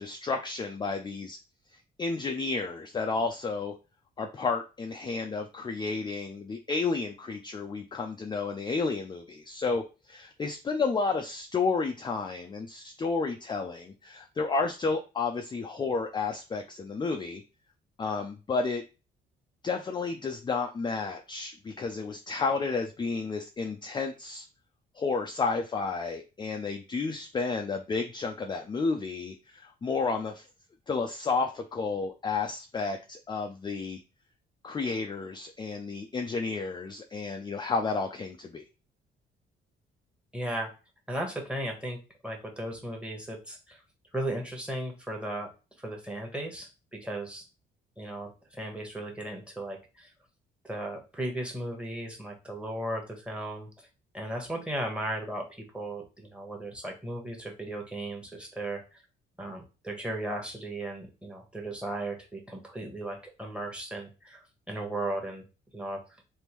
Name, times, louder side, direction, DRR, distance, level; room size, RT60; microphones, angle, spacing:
voice 1, 0.0-1.4 2.0-3.8 4.2-9.8 10.1-17.4 18.0-18.8 19.6-24.4 25.0-30.5 30.9-34.0 34.6-38.6, left 4 dB, 25° left, 4 dB, 0.4 m, -31 dB
voice 2, 40.3-40.7 41.1-42.0 42.2-43.8 44.1-45.5 45.8-47.4 48.0-50.1 50.6-53.9 54.1-59.0 59.4-65.4 65.7-66.0, right 1 dB, 5° right, 0 dB, 1.1 m, -36 dB
3.4 x 2.6 x 3.0 m, 0.31 s
cardioid pair, 90°, 20 cm